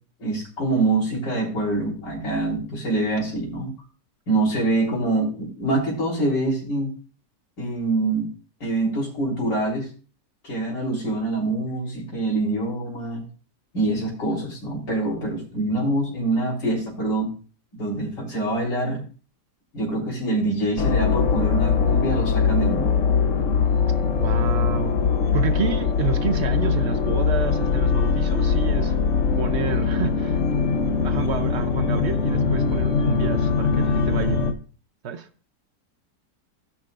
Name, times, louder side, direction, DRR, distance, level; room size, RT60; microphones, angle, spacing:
voice 1, 0.2-3.7 4.3-6.9 7.6-8.3 8.6-9.9 10.4-13.2 13.7-17.3 17.8-19.0 19.7-22.9, right 2 dB, 75° left, -4 dB, 4.4 m, -25 dB
sound 1, 20.8-34.5, left 5 dB, 50° left, 1.1 m, -21 dB
voice 2, 24.2-24.9 25.3-28.9 29.4-30.4 31.0-34.4 35.0-35.3, right 7 dB, 55° right, 9 dB, 0.7 m, -29 dB
17.5 x 6.0 x 2.5 m, 0.37 s
omnidirectional pair, 1.9 m